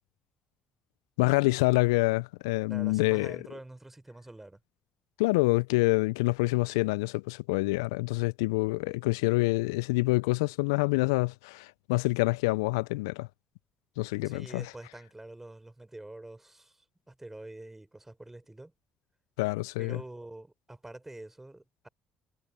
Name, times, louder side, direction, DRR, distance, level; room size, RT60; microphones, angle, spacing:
voice 1, 1.2-3.4 5.2-13.3 14.0-14.7 19.4-20.0, left 24 dB, 75° left, 0.5 m, -27 dB
voice 2, 2.7-4.6 14.2-18.7 19.8-21.9, right 2 dB, 15° right, 4.6 m, -46 dB
figure-of-eight pair, 45°, 2 cm